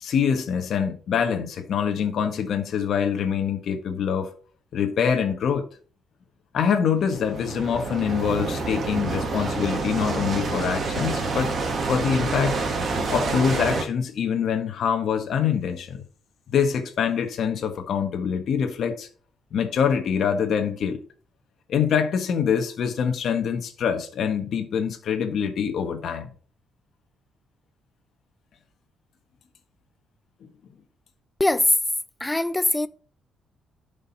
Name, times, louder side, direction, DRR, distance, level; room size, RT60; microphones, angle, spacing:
voice 1, 0.0-4.3 4.7-5.6 6.5-11.5 11.8-12.6 13.1-16.0 16.5-19.1 19.5-21.0 21.7-26.3, left 7 dB, 55° left, 1.5 m, -25 dB
sound 1, 7.0-13.8, right 3 dB, 40° right, 2.1 m, -28 dB
voice 2, 31.4-31.7 32.2-32.9, left 1 dB, 10° left, 0.5 m, -21 dB
11.5 x 5.3 x 4.2 m
cardioid pair, 155°, 0 cm